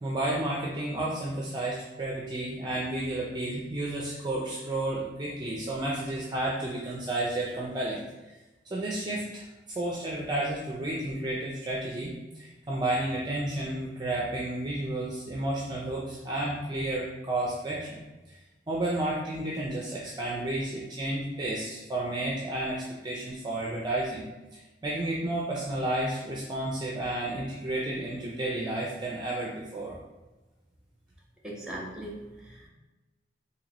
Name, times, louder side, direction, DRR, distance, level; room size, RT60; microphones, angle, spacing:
voice 1, 0.0-8.0 8.7-9.4 9.8-18.0 18.3-18.4 18.7-24.2 24.8-30.0, right 1 dB, 25° right, -4 dB, 0.5 m, -31 dB
voice 2, 31.4-32.7, right 1 dB, 5° right, -3 dB, 0.8 m, -39 dB
3.8 x 2.8 x 3.0 m, 1.1 s
head